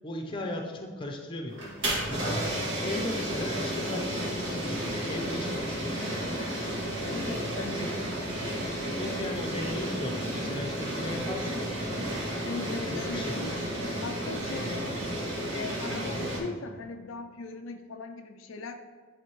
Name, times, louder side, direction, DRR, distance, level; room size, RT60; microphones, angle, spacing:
voice 1, 0.0-2.5 2.8-6.3 7.8-7.9 8.9-12.2 12.7-13.4, left 1 dB, 25° left, 2 dB, 0.7 m, -37 dB
sound 1, 1.5-16.4, right 1 dB, 55° right, 2.1 m, -32 dB
voice 2, 7.1-8.0 12.4-13.6 14.0-15.1 15.5-18.7, left 3 dB, 65° left, 5 dB, 0.4 m, -39 dB
11.0 x 4.0 x 3.1 m, 1.5 s
head